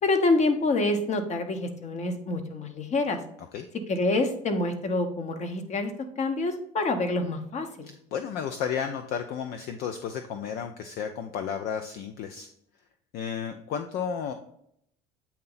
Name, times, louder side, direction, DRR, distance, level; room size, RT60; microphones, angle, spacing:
voice 1, 0.0-3.2 3.9-5.9 6.2-7.9, left 2 dB, 40° left, 7 dB, 1.0 m, -27 dB
voice 2, 7.9-12.5 13.1-14.3, left 7 dB, 60° left, 7 dB, 0.5 m, -33 dB
8.4 x 2.9 x 3.9 m, 0.72 s
hypercardioid pair, 75°, 18 cm